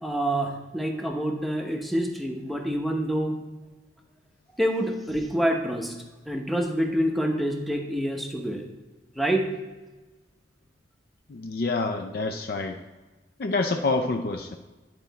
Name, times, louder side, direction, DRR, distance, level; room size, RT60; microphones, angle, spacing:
voice 1, 0.0-3.4 4.6-5.9 6.3-8.7 9.1-9.5, right 1 dB, ahead, 2 dB, 0.8 m, -27 dB
voice 2, 11.3-12.8 13.4-14.6, left 3 dB, 55° left, 5 dB, 0.4 m, -27 dB
9.6 x 4.4 x 4.1 m, 1.2 s
head